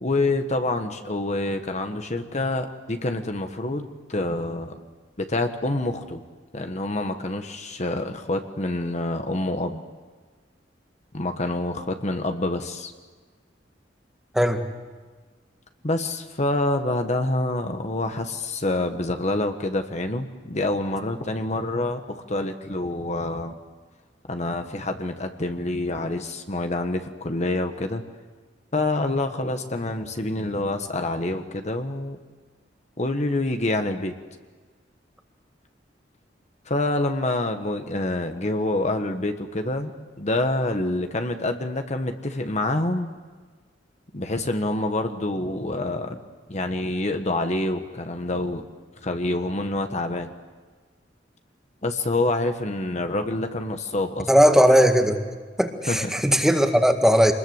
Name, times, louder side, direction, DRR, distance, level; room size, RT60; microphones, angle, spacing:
voice 1, 0.0-4.8 5.2-6.2 6.5-9.8 11.1-12.9 15.8-23.5 24.3-28.0 28.7-32.2 33.0-34.1 36.6-39.9 40.2-43.1 44.1-46.2 46.5-48.6 49.0-50.3 51.8-54.3 55.9-56.1, left 2 dB, 40° left, 6 dB, 1.4 m, -27 dB
voice 2, 54.3-55.2 55.6-57.3, equal, 5° right, 5 dB, 1.9 m, -18 dB
26.5 x 21.0 x 8.0 m, 1.4 s
head